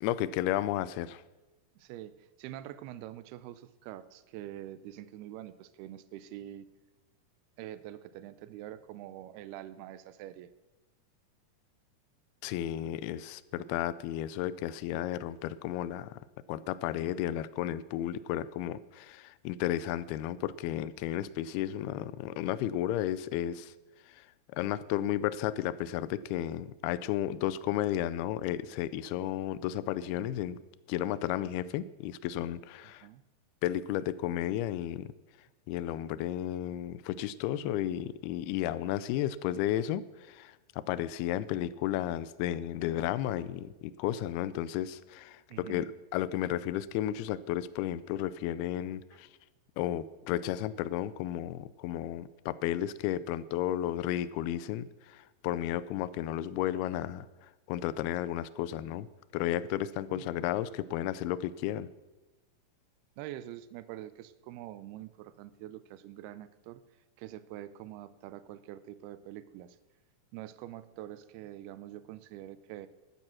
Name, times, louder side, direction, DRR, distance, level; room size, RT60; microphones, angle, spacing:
voice 1, 0.0-1.2 12.4-16.2 16.5-23.7 24.1-24.2 24.6-30.6 30.9-33.1 33.6-35.1 35.7-45.9 46.1-49.3 49.8-59.1 59.3-61.9, left 12 dB, 85° left, 16 dB, 2.5 m, -33 dB
voice 2, 1.8-6.7 7.6-10.5 33.0-33.2 41.5-41.7 45.5-45.9 49.1-49.2 60.1-60.3 63.2-66.8 67.2-69.8 70.3-72.9, right 13 dB, 85° right, 15 dB, 2.6 m, -45 dB
12.0 x 10.5 x 6.3 m, 1.1 s
omnidirectional pair, 4.4 m